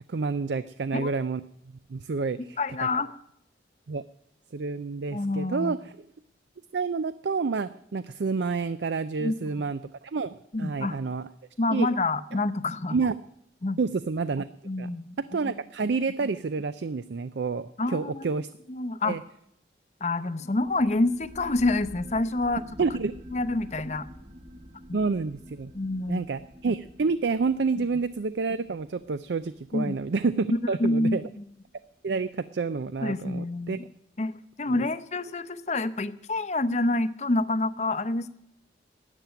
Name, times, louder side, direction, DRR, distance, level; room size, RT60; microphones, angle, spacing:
voice 1, 0.1-1.4 1.9-2.6 3.9-4.0 4.5-5.9 6.7-11.3 11.7-11.9 12.9-13.1 13.8-14.5 14.8-14.9 15.3-18.5 19.0-19.2 22.8-23.1 24.9-25.7 26.1-31.2 32.0-33.8 34.7-34.8, right 4 dB, 70° right, 14 dB, 0.5 m, -29 dB
voice 2, 2.6-3.2 5.1-5.8 9.2-9.3 10.5-11.0 11.6-13.0 13.6-13.8 14.6-15.5 17.8-18.2 18.7-19.2 20.0-22.6 23.3-24.1 24.9-25.0 25.7-26.3 29.7-29.9 30.8-31.5 33.0-33.9 34.2-38.3, left 2 dB, 40° left, 13 dB, 0.7 m, -27 dB
sound 1, 20.6-31.8, equal, 35° right, 1.3 m, -47 dB
12.5 x 9.1 x 9.2 m, 0.73 s
head